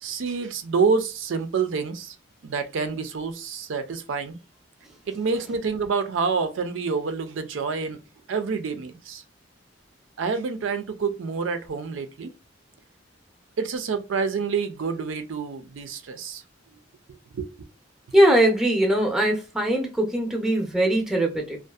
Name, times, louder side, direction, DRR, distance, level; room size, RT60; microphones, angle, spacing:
voice 1, 0.0-2.2 2.4-4.4 5.1-8.0 8.3-9.2 10.2-12.3 13.6-16.4 17.3-17.5, right 5 dB, 85° right, 0.4 m, -27 dB
voice 2, 18.1-21.6, right 1 dB, 5° right, 0.6 m, -21 dB
2.6 x 2.4 x 2.3 m
head